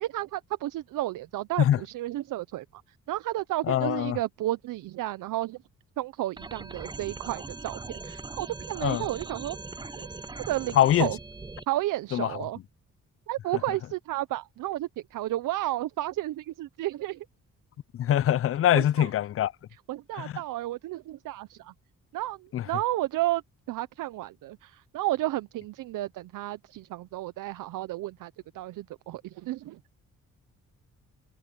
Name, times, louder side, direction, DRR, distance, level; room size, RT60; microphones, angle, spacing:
voice 1, 0.0-2.8 3.1-5.6 6.0-9.6 10.0-10.1 10.5-11.2 11.7-12.6 13.3-17.3 18.7-19.1 19.9-21.7 22.1-23.4 23.7-29.8, right 15 dB, 85° right, 0.7 m, -32 dB
voice 2, 3.7-4.2 8.8-9.0 10.8-11.1 12.1-12.3 18.0-19.5 20.2-20.3 22.5-22.6, left 11 dB, 45° left, 0.4 m, -23 dB
sound 1, 6.4-11.6, right 3 dB, 15° right, 0.6 m, -40 dB
cardioid pair, 85°, 31 cm